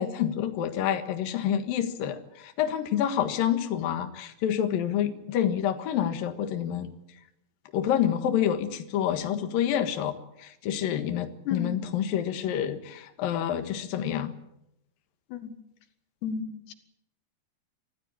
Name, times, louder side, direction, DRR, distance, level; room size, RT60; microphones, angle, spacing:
voice 1, 0.0-6.9 7.7-14.3, left 10 dB, 65° left, 7 dB, 3.1 m, -28 dB
voice 2, 16.2-16.7, left 7 dB, 85° left, 8 dB, 3.9 m, -33 dB
25.0 x 15.5 x 8.8 m, 0.81 s
omnidirectional pair, 4.7 m